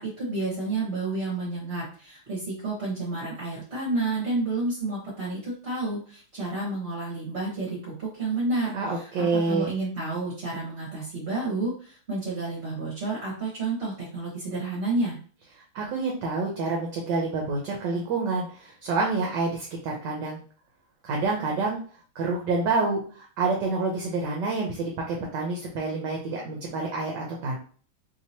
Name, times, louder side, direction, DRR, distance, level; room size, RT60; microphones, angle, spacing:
voice 1, 0.0-15.2, right 2 dB, 40° right, -7 dB, 1.2 m, -30 dB
voice 2, 8.7-9.7 15.7-20.4 21.0-21.8 22.1-27.6, right 3 dB, 70° right, -1 dB, 1.2 m, -28 dB
3.4 x 2.9 x 2.7 m, 0.42 s
omnidirectional pair, 2.3 m